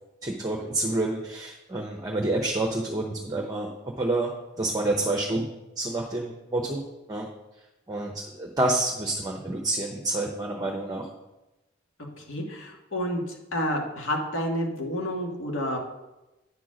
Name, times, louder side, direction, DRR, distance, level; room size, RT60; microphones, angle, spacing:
voice 1, 0.2-5.5 5.8-6.8 7.1-7.3 7.9-11.1, right 2 dB, 20° right, 1 dB, 0.8 m, -28 dB
voice 2, 12.2-15.8, equal, 80° left, 1 dB, 1.7 m, -30 dB
9.3 x 4.5 x 6.2 m, 1.0 s
head